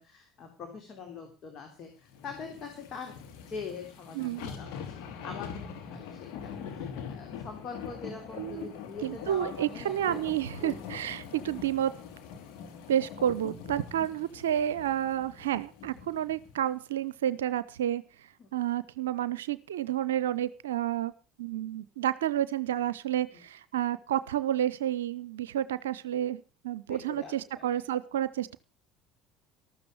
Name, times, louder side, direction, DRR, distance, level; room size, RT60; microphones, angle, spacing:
voice 1, 0.0-3.1 3.5-10.2 10.6-10.8 14.0-14.1 18.4-18.5 26.9-27.8, left 5 dB, 45° left, 3 dB, 3.6 m, -43 dB
sound 1, 2.1-16.5 17.0-17.1, left 7 dB, 60° left, 2.8 m, -43 dB
voice 2, 4.1-4.5 8.4-8.7 9.0-11.9 12.9-18.0 18.5-21.1 21.4-28.6, right 11 dB, 75° right, 17 dB, 0.6 m, -30 dB
14.0 x 13.0 x 4.9 m, 0.34 s
figure-of-eight pair, 65°, 0 cm